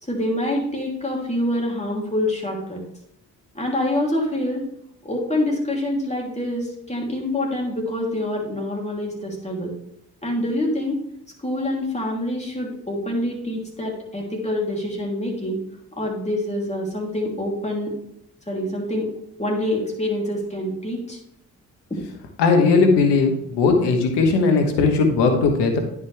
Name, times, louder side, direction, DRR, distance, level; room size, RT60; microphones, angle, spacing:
voice 1, 0.0-2.8 3.5-4.6 5.0-9.7 10.2-11.0 11.4-15.6 16.0-17.9 18.5-19.1 19.4-21.2 21.9-22.0, left 1 dB, 15° left, -2 dB, 3.0 m, -26 dB
voice 2, 22.4-25.8, left 4 dB, 85° left, 5 dB, 1.2 m, -18 dB
9.8 x 5.3 x 3.4 m, 0.75 s
supercardioid pair, 45°, 41 cm